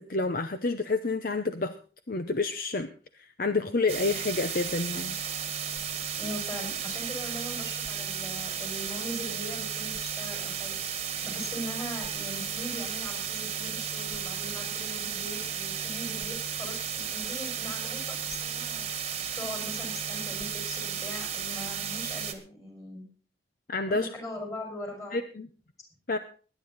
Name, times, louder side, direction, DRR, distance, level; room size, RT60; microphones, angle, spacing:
voice 1, 0.0-1.7 2.1-2.9 3.2-5.1 23.7-24.1 25.1-25.5 26.1-26.2, left 3 dB, 50° left, 9 dB, 0.7 m, -29 dB
sound 1, 3.9-22.3, right 8 dB, 35° right, 1.5 m, -34 dB
voice 2, 6.1-10.8 11.2-18.9 19.4-23.1 23.9-25.2, left 1 dB, 20° left, 2 dB, 5.4 m, -40 dB
20.5 x 9.6 x 4.1 m, 0.39 s
head